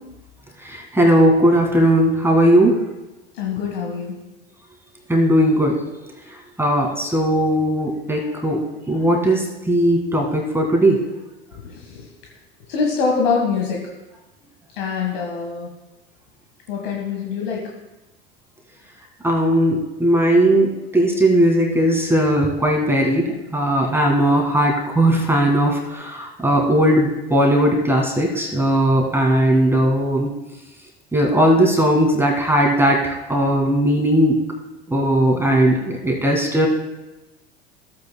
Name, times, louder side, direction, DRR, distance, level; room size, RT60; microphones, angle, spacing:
voice 1, 0.6-2.8 5.1-5.8 6.6-8.6 8.9-11.0 19.2-30.3 31.1-34.4 34.9-36.7, right 1 dB, 10° right, 0 dB, 1.9 m, -18 dB
voice 2, 3.3-4.2 11.5-12.1 12.6-13.9 14.7-15.7 16.7-17.7, left 5 dB, 65° left, -1 dB, 1.6 m, -24 dB
14.5 x 8.6 x 2.2 m, 1.0 s
hypercardioid pair, 85°, 31 cm